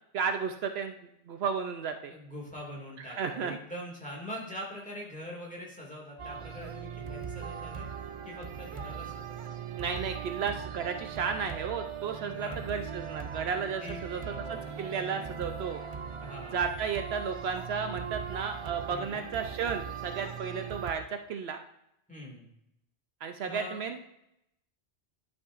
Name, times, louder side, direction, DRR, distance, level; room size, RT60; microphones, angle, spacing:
voice 1, 0.1-1.0 1.3-2.1 3.1-3.6 9.8-14.2 14.5-15.8 16.5-21.6 23.2-24.0, right 6 dB, 70° right, 6 dB, 0.8 m, -33 dB
voice 2, 2.1-7.9 8.2-9.6 12.2-12.7 13.5-15.3 16.2-16.6 18.9-19.3 22.1-22.5 23.4-23.8, equal, 5° left, -3 dB, 2.1 m, -43 dB
sound 1, 6.2-20.9, right 7 dB, 50° right, 0.4 m, -40 dB
11.5 x 6.2 x 2.5 m, 0.81 s
omnidirectional pair, 1.1 m